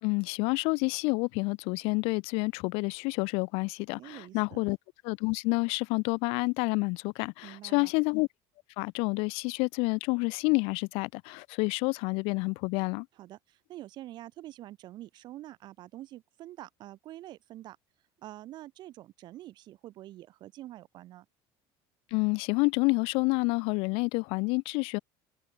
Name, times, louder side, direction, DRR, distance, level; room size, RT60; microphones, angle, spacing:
voice 1, 0.0-4.8 5.0-8.3 8.8-13.1 22.1-25.0, left 29 dB, 70° left, 2.6 m, -29 dB
voice 2, 4.0-4.6 7.4-7.9 13.1-17.8 18.2-21.3, right 14 dB, 45° right, 3.6 m, -46 dB
cardioid pair, 155°, 10 cm